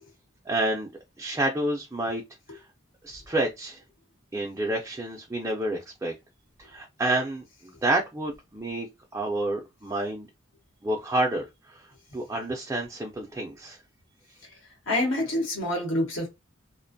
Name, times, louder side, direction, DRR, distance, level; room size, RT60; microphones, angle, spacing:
voice 1, 0.5-0.9 1.2-2.2 2.5-2.6 3.0-3.8 4.3-6.1 6.6-8.9 9.1-10.3 10.8-11.8 12.1-13.8, right 1 dB, 15° right, 0.3 m, -29 dB
voice 2, 14.9-16.3, left 1 dB, 80° left, 1.0 m, -26 dB
2.4 x 2.1 x 2.6 m
head